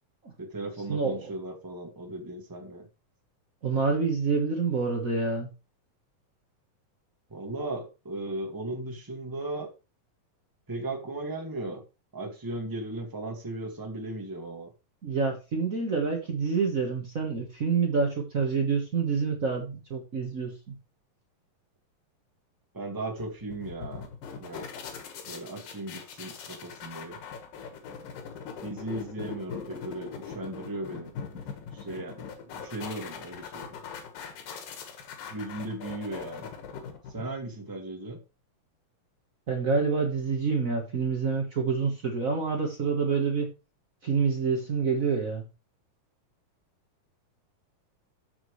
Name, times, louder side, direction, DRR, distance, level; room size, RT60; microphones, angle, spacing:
voice 1, 0.4-2.9 7.3-9.7 10.7-11.8 12.1-14.7 22.7-24.1 24.4-24.8 25.2-27.2 28.6-31.1 31.7-33.8 35.3-36.5 37.1-38.2, right 2 dB, 10° right, 0.9 m, -37 dB
voice 2, 0.9-1.3 3.6-5.5 15.0-20.7 39.5-43.5 44.0-45.4, right 5 dB, 85° right, 0.7 m, -27 dB
sound 1, 23.2-37.5, left 6 dB, 80° left, 3.3 m, -41 dB
13.5 x 6.0 x 3.2 m
omnidirectional pair, 3.9 m